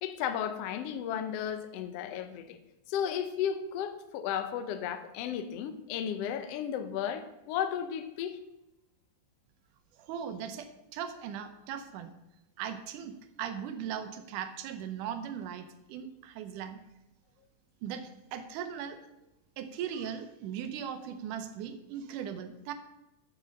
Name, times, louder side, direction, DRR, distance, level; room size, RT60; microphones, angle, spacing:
voice 1, 0.0-2.6 2.9-8.4, left 9 dB, 75° left, 9 dB, 1.4 m, -34 dB
voice 2, 9.9-12.1 12.6-16.8 17.8-19.0 19.6-22.7, right 8 dB, 80° right, 9 dB, 2.3 m, -39 dB
7.8 x 7.5 x 6.4 m, 0.91 s
omnidirectional pair, 3.7 m